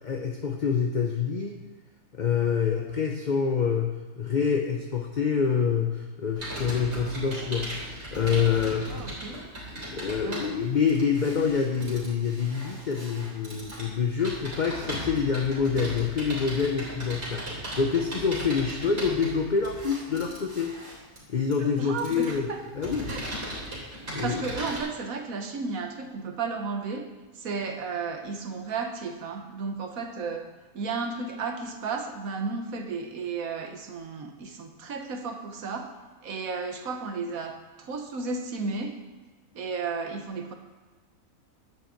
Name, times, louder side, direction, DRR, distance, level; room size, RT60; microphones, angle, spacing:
voice 1, 0.0-1.6 2.1-9.0 9.9-20.7 21.3-23.1 24.1-24.4, left 6 dB, 40° left, 3 dB, 0.8 m, -27 dB
Computer keyboard, 6.4-24.8, right 1 dB, 55° right, 3.9 m, -37 dB
voice 2, 8.9-9.5 10.2-10.8 21.5-22.6 23.1-23.3 24.0-27.1 27.3-30.5 30.7-35.9 36.2-38.9 39.5-40.5, right 4 dB, 90° right, 5 dB, 1.6 m, -33 dB
10.5 x 6.1 x 7.7 m, 1.3 s
omnidirectional pair, 1.4 m